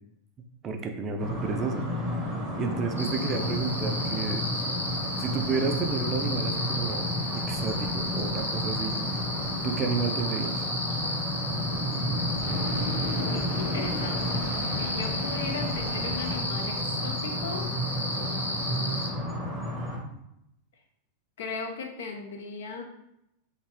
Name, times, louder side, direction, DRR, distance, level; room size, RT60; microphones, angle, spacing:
voice 1, 0.6-2.0 2.5-4.4 5.2-7.1 7.5-9.0 9.6-10.7, right 4 dB, 30° right, 5 dB, 0.4 m, -31 dB
sound 1, 1.2-20.0, equal, 10° left, 1.0 m, -32 dB
sound 2, 3.0-19.1, left 1 dB, 90° right, 0.5 m, -33 dB
sound 3, 7.6-16.8, equal, 30° left, 1.5 m, -44 dB
voice 2, 13.1-14.4 14.8-17.7 18.0-19.3 21.4-22.8, left 4 dB, 60° left, 3 dB, 0.5 m, -38 dB
2.8 x 2.5 x 3.1 m, 0.80 s
figure-of-eight pair, 90°, 0 cm